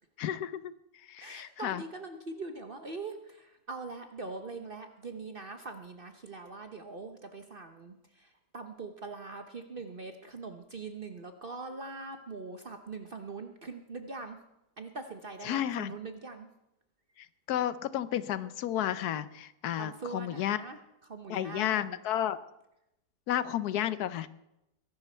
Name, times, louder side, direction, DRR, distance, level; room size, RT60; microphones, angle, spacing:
voice 1, 0.2-0.7 1.1-1.8 15.4-15.9 17.2-20.6 21.3-22.4 23.3-24.3, left 11 dB, 75° left, 14 dB, 1.3 m, -32 dB
voice 2, 1.2-14.4 14.8-16.5 19.8-20.8 21.0-22.0, right 3 dB, 40° right, 6 dB, 1.0 m, -42 dB
22.5 x 11.5 x 4.4 m, 0.86 s
omnidirectional pair, 1.7 m